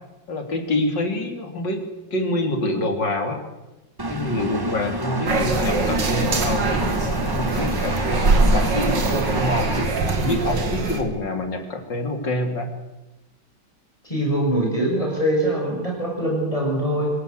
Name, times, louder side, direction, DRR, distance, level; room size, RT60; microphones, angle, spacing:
voice 1, 0.3-1.8 2.1-3.4 4.1-12.7, left 1 dB, 75° left, 5 dB, 3.8 m, -26 dB
Engine, 4.0-9.8, right 1 dB, 15° right, 1.3 m, -29 dB
sound 1, 5.3-11.0, right 3 dB, 75° right, 3.0 m, -22 dB
voice 2, 14.0-17.1, right 1 dB, 20° left, -1 dB, 6.6 m, -23 dB
25.5 x 17.0 x 8.1 m, 1.0 s
omnidirectional pair, 2.0 m